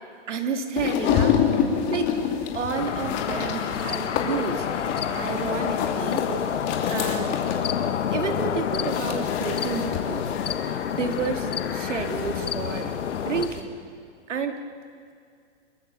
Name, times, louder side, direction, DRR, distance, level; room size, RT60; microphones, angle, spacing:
voice 1, 0.3-1.4 1.6-2.2 2.5-4.7 5.1-6.3 6.9-7.4 8.1-10.3 10.7-12.9 13.3-13.8 14.3-14.6, right 5 dB, 80° right, 6 dB, 2.7 m, -30 dB
sound 1, 0.8-13.6, left 7 dB, 30° left, 2.9 m, -29 dB
sound 2, 2.7-13.5, left 8 dB, 85° left, 1.4 m, -28 dB
26.5 x 22.5 x 7.1 m, 2.3 s
hypercardioid pair, 145°, 35 cm